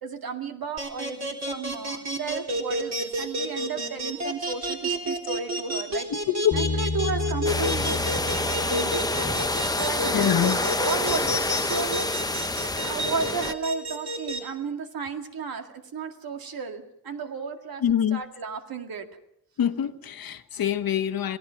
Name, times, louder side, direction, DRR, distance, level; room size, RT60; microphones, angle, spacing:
voice 1, 0.0-6.1 6.5-12.1 12.8-17.8 18.1-19.1, right 5 dB, 85° right, 2.2 m, -34 dB
sound 1, 0.8-14.4, equal, 50° right, 3.7 m, -29 dB
voice 2, 6.1-6.5 10.0-10.6 17.8-18.2 19.6-21.4, left 9 dB, 80° left, 1.2 m, -25 dB
Bass guitar, 6.5-12.8, left 3 dB, 40° left, 1.4 m, -34 dB
sound 2, 7.4-13.5, left 2 dB, 10° left, 0.7 m, -28 dB
27.5 x 17.5 x 5.8 m
wide cardioid pair, 140°, 35 cm